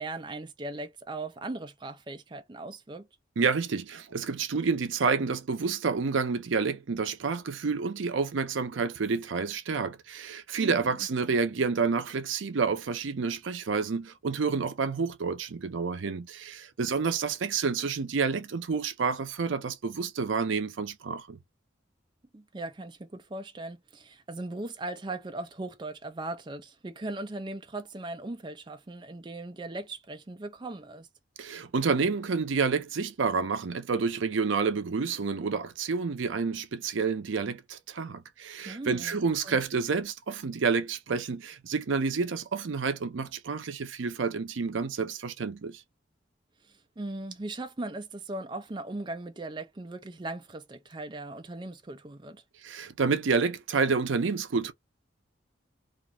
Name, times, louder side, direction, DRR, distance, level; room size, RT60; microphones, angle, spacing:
voice 1, 0.0-3.1 10.6-10.9 11.2-11.4 22.3-31.1 38.6-39.6 46.6-52.4, right 2 dB, 25° right, 0.5 m, -39 dB
voice 2, 3.4-21.4 31.4-45.8 52.6-54.7, right 5 dB, 80° right, 0.5 m, -29 dB
2.5 x 2.3 x 2.9 m
head